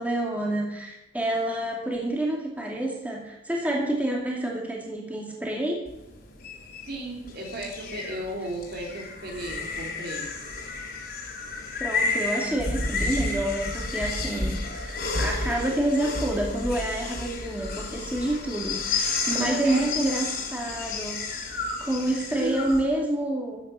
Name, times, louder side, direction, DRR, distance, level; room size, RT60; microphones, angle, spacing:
voice 1, 0.0-5.8 11.8-21.2 21.8-23.6, right 1 dB, 10° right, -2 dB, 2.4 m, -28 dB
sound 1, 5.9-22.8, left 3 dB, 55° left, 3.5 m, -31 dB
voice 2, 6.9-10.3 19.3-20.2 22.1-22.6, right 1 dB, 55° right, 0 dB, 3.3 m, -35 dB
13.5 x 9.1 x 5.7 m, 0.93 s
head